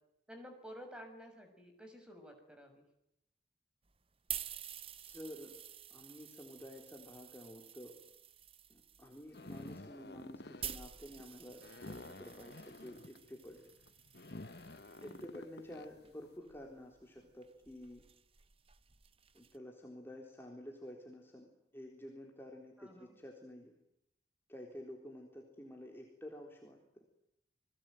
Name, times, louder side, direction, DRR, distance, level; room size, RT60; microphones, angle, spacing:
voice 1, 0.3-2.8 15.0-15.3 22.8-23.2, equal, 5° right, 4 dB, 6.3 m, -52 dB
old metal rake shake, 3.9-15.3 16.0-19.6, right 10 dB, 35° right, 1.0 m, -50 dB
voice 2, 5.1-5.5 5.9-7.9 8.7-13.6 15.0-18.0 19.3-23.7 24.5-27.0, equal, 15° left, 0 dB, 3.9 m, -50 dB
sound 1, 9.3-16.3, left 2 dB, 65° left, 1.2 m, -51 dB
28.5 x 21.0 x 9.2 m, 0.80 s
head